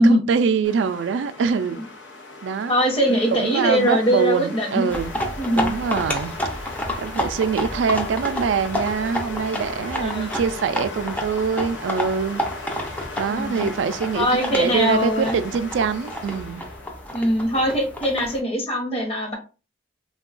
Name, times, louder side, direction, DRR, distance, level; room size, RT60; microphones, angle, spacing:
voice 1, 0.0-1.8 2.4-2.7 3.1-5.2 5.5-6.3 7.0-12.5 13.2-16.7, right 6 dB, 80° right, 0.3 m, -24 dB
sound 1, 0.6-18.4, left 3 dB, 85° left, 0.7 m, -38 dB
voice 2, 2.7-4.9 5.4-5.7 10.0-10.4 13.3-13.7 14.1-15.3 17.1-19.4, equal, 35° left, 0.9 m, -21 dB
sound 2, 4.9-18.4, left 1 dB, 10° left, 0.5 m, -30 dB
3.5 x 2.3 x 2.4 m
head